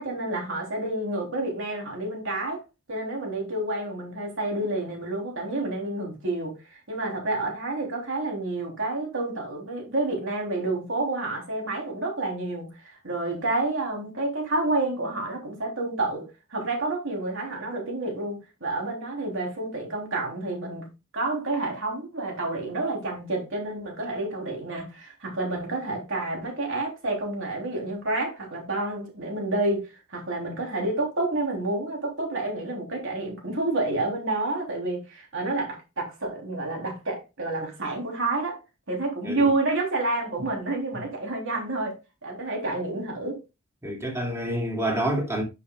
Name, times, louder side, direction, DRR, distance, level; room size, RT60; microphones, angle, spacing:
voice 1, 0.0-2.6 2.9-6.6 6.9-20.8 21.1-38.6 38.9-42.0 42.2-43.4, right 2 dB, 60° right, 3.6 m, -29 dB
voice 2, 43.8-45.4, right 1 dB, 15° right, 2.5 m, -28 dB
9.9 x 6.9 x 2.4 m
head